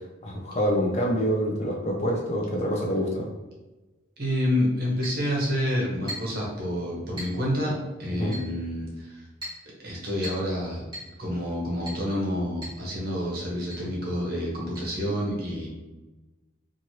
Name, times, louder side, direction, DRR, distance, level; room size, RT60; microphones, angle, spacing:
voice 1, 0.2-3.3 8.1-8.4, equal, 35° left, -1 dB, 0.5 m, -26 dB
voice 2, 4.2-9.2 9.8-10.9 11.2-15.7, equal, 50° right, -3 dB, 0.8 m, -28 dB
Chink clink, 5.0-5.2 6.1-6.4 7.2-7.4 8.3-8.5 9.4-9.6 10.2-10.5 10.9-11.1 11.9-12.1 12.6-12.8 13.1-13.2 13.7-13.9 14.8-14.9, equal, 25° right, 1.3 m, -38 dB
3.1 x 2.5 x 2.8 m, 1.1 s
head